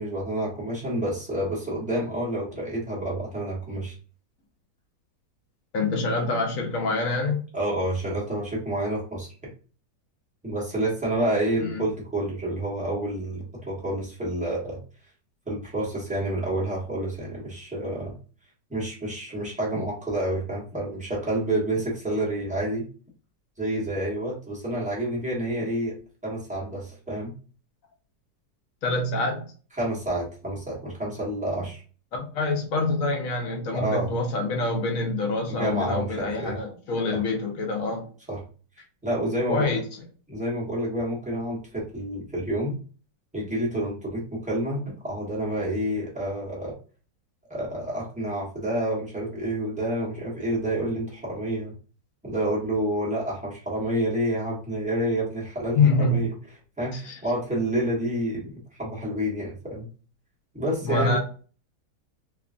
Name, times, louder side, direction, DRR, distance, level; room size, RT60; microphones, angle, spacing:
voice 1, 0.0-3.9 7.5-9.3 10.4-14.8 15.5-18.2 18.7-22.9 23.6-25.9 26.2-27.3 29.7-31.8 33.7-34.1 35.5-36.6 37.1-37.2 38.3-38.4 39.0-39.7 40.3-42.8 43.3-46.7 47.5-51.7 52.2-56.3 56.8-59.9 60.5-61.2, right 1 dB, 10° right, 0.3 m, -29 dB
voice 2, 5.7-7.4 11.6-11.9 28.8-29.4 32.1-38.1 39.5-39.8 55.7-56.2 56.9-57.2 60.8-61.2, left 3 dB, 65° left, 0.8 m, -26 dB
2.9 x 2.4 x 2.4 m
omnidirectional pair, 1.9 m